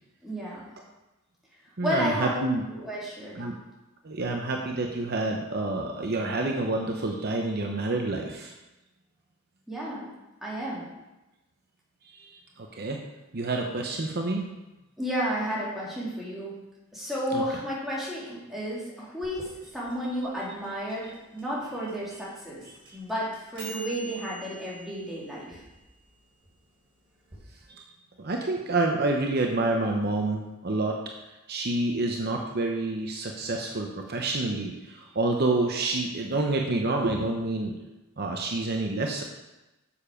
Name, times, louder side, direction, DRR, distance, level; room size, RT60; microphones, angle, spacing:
voice 1, 0.2-0.6 1.8-2.4 2.8-3.4 9.7-10.1 10.4-10.9 15.0-16.5 16.9-22.6 22.9-25.6, equal, ahead, -7 dB, 2.5 m, -32 dB
voice 2, 1.8-2.6 3.4-3.5 4.0-8.5 12.1-13.0 13.3-14.4 17.3-17.4 22.8-22.9 27.7-27.9 28.2-31.0 31.5-39.2, right 2 dB, 50° right, 2 dB, 0.7 m, -28 dB
sound 1, 19.2-27.4, right 2 dB, 25° right, 3.2 m, -47 dB
7.2 x 7.0 x 5.0 m, 1.0 s
head